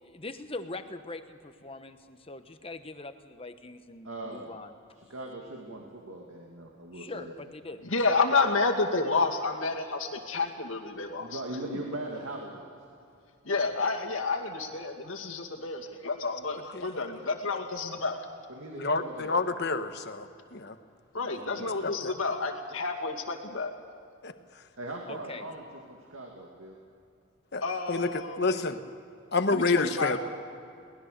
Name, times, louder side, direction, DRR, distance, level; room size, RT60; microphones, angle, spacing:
voice 1, 0.0-4.7 6.9-8.2 25.1-25.4, left 2 dB, 25° left, 8 dB, 1.1 m, -42 dB
voice 2, 4.0-4.5 5.0-7.3 11.2-12.7 18.5-19.3 21.2-21.9 24.8-26.8, right 1 dB, 75° right, 0 dB, 2.4 m, -40 dB
voice 3, 7.8-11.4 11.7-11.8 13.5-18.2 21.1-23.7 27.6-28.7 29.5-30.2, left 3 dB, 70° left, 2 dB, 2.3 m, -30 dB
voice 4, 16.7-17.0 18.8-20.7 21.8-22.1 24.2-24.3 27.5-27.6 27.9-28.8 29.3-30.2, left 3 dB, 50° left, 8 dB, 1.2 m, -29 dB
23.0 x 19.5 x 6.8 m, 2.5 s
head